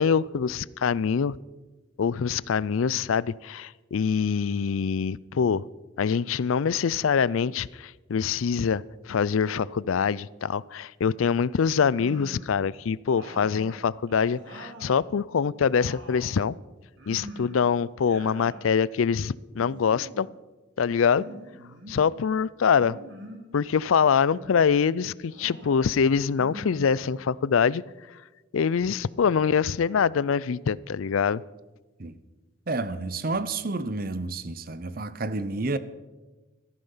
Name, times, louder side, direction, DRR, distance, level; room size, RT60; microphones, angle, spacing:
voice 1, 0.0-1.4 2.0-5.6 6.0-16.5 17.1-20.3 20.8-21.2 21.9-23.0 23.5-27.8 28.5-31.4, left 6 dB, 85° left, 0.4 m, -24 dB
sound 1, 11.8-12.6 13.1-15.0 15.4-16.4 17.0-17.6 17.9-18.7 19.5-20.3 21.1-22.0 22.8-23.5 24.1-24.8 25.3-25.9 26.3-27.4, equal, 65° right, 3.6 m, -45 dB
voice 2, 32.7-35.8, right 3 dB, 45° right, 0.8 m, -30 dB
17.5 x 14.0 x 5.6 m
head